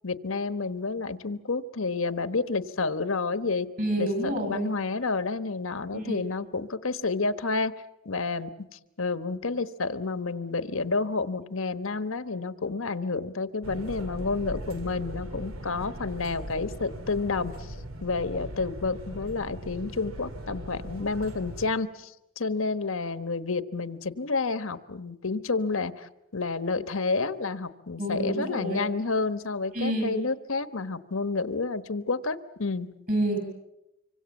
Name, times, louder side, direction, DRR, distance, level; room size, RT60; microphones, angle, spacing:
voice 1, 0.0-3.7 4.0-7.7 8.0-8.5 9.0-17.7 18.0-22.1 22.4-32.9, left 3 dB, 75° left, 12 dB, 1.2 m, -30 dB
voice 2, 3.8-4.7 5.9-6.1 28.0-28.8 29.7-30.2 33.1-33.4, right 1 dB, 40° right, 5 dB, 7.7 m, -28 dB
sound 1, 13.6-21.7, equal, 85° right, 2.6 m, -39 dB
26.0 x 25.0 x 7.2 m, 0.89 s
head